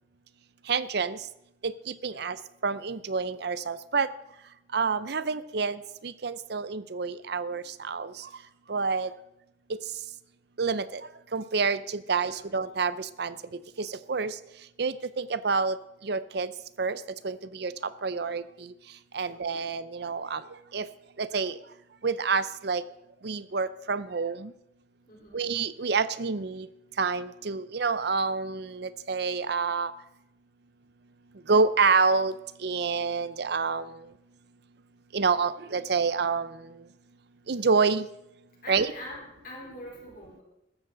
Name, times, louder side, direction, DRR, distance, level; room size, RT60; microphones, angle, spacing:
voice 1, 0.7-1.2 1.6-1.7 2.0-2.3 2.6-4.1 4.7-5.8 6.2-8.1 8.7-9.1 10.6-11.0 11.3-11.8 12.1-12.9 13.2-13.3 14.1-14.3 14.8-15.8 16.1-16.5 16.8-17.0 17.2-17.7 18.0-18.4 19.1-20.4 20.7-20.9 21.2-21.5 22.0-22.8 23.2-24.5 25.3-26.6 27.0-29.9 31.5-32.3 32.6-33.8 35.1-36.5 37.5-38.0 38.7-38.9, right 4 dB, 60° right, 15 dB, 0.6 m, -27 dB
voice 2, 12.2-12.5 19.2-19.5 25.1-25.4 38.6-40.4, left 1 dB, 50° left, -2 dB, 4.1 m, -44 dB
14.5 x 13.0 x 3.9 m, 0.85 s
head